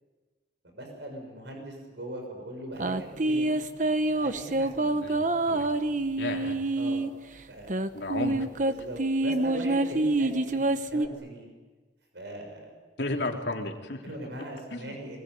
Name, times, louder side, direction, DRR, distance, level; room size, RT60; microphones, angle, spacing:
voice 1, 0.6-3.6 4.1-5.0 6.8-7.0 7.5-7.7 8.7-11.5 12.1-12.7 14.0-15.2, right 1 dB, 75° right, 3 dB, 6.6 m, -40 dB
sound 1, 2.8-7.1 7.7-11.1, right 2 dB, 45° right, 1.0 m, -27 dB
voice 2, 5.0-5.8 6.2-6.6 7.9-8.5 13.0-14.1 14.7-15.0, left 2 dB, 70° left, 2 dB, 3.3 m, -33 dB
25.5 x 21.5 x 9.4 m, 1.3 s
head